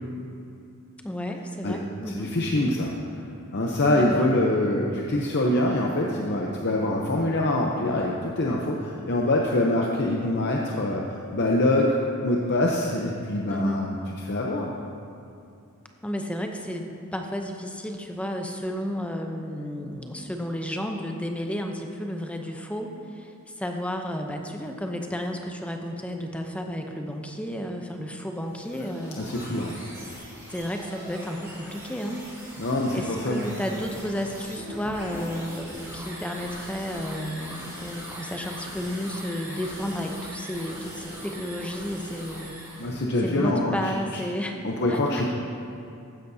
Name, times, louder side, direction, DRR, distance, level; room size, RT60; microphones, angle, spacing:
voice 1, 1.0-2.3 3.9-4.3 13.5-13.9 16.0-29.2 30.5-32.2 32.9-42.5 43.2-44.6 44.9-45.3, equal, 5° left, 3 dB, 0.6 m, -32 dB
voice 2, 2.1-2.9 3.5-11.0 11.3-11.9 12.2-14.0 14.3-14.8 29.2-29.7 32.6-33.4 42.8-43.9 44.6-45.3, left 1 dB, 50° left, -1 dB, 0.7 m, -24 dB
sound 1, 28.4-43.0, right 1 dB, 10° right, 2.4 m, -41 dB
14.5 x 10.0 x 2.7 m, 2.5 s
head